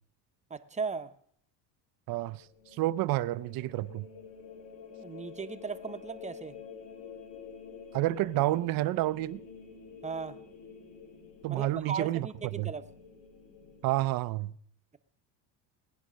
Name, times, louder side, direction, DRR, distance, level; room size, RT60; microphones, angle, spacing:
voice 1, 0.5-1.1 5.0-6.6 10.0-10.4 11.5-12.9, right 5 dB, 15° right, 0.8 m, -37 dB
sound 1, 2.1-14.1, left 6 dB, 65° left, 3.0 m, -49 dB
voice 2, 2.1-2.4 2.8-4.1 7.9-9.4 11.4-12.3 12.6-12.7 13.8-14.5, right 17 dB, 50° right, 0.5 m, -29 dB
19.0 x 9.9 x 6.3 m
cardioid pair, 125°, 45 cm